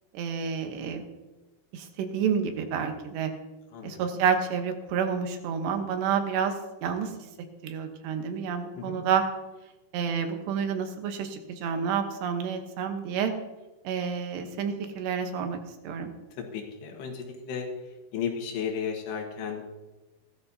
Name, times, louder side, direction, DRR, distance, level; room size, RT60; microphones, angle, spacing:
voice 1, 0.1-1.1 1.7-3.3 3.8-6.5 6.8-7.1 7.6-9.2 9.9-13.3 13.8-16.1, right 7 dB, 80° right, 6 dB, 3.4 m, -29 dB
voice 2, 16.4-17.7 18.1-19.6, left 7 dB, 75° left, 2 dB, 3.7 m, -34 dB
17.0 x 13.0 x 2.8 m, 1.1 s
omnidirectional pair, 4.9 m